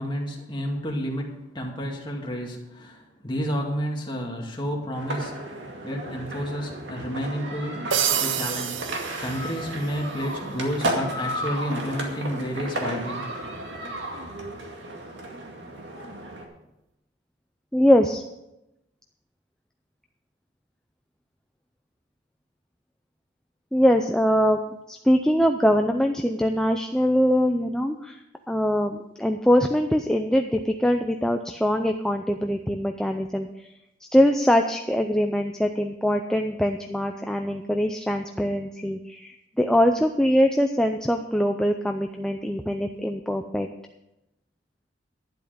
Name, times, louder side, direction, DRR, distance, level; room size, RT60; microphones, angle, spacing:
voice 1, 0.0-5.5 5.8-7.8 8.2-8.8 9.2-13.2 13.8-13.9, equal, 25° left, 0 dB, 2.2 m, -30 dB
sound 1, 4.9-16.4, right 1 dB, 70° right, 2.1 m, -33 dB
sound 2, 7.9-10.0, right 9 dB, 85° right, 0.7 m, -28 dB
voice 2, 17.7-18.2 23.7-24.6 24.9-28.2 28.5-33.7 34.1-43.7, equal, 5° left, 4 dB, 0.5 m, -22 dB
12.0 x 10.0 x 5.1 m, 0.90 s
head